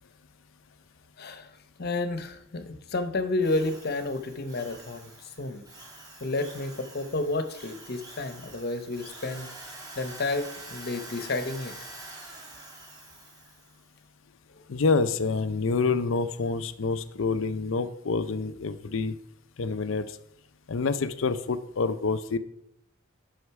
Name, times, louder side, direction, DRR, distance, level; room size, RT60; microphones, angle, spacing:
voice 1, 1.2-1.5 1.8-5.6 6.2-9.5 10.0-11.7 14.6-14.7, left 2 dB, 50° left, 9 dB, 1.0 m, -31 dB
Drill, 3.4-13.8, right 2 dB, 20° right, 2.5 m, -46 dB
voice 2, 14.7-19.2 19.6-20.2 20.7-22.4, left 4 dB, 70° left, 12 dB, 0.6 m, -27 dB
11.5 x 6.4 x 4.7 m, 0.79 s
head